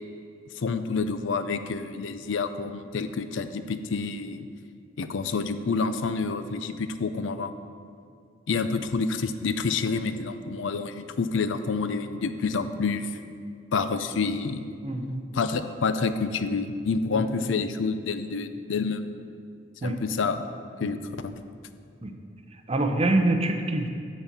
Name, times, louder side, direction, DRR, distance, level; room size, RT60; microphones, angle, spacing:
voice 1, 0.6-4.5 5.0-7.5 8.5-13.1 13.7-14.6 15.3-19.0 19.8-20.5 20.8-21.0 21.2-21.3, left 4 dB, 80° left, 10 dB, 0.5 m, -28 dB
voice 2, 14.8-15.2 17.1-17.2 19.8-19.9 22.0-22.1 22.7-23.9, right 2 dB, 30° right, 4 dB, 0.7 m, -25 dB
10.5 x 4.2 x 7.3 m, 2.2 s
head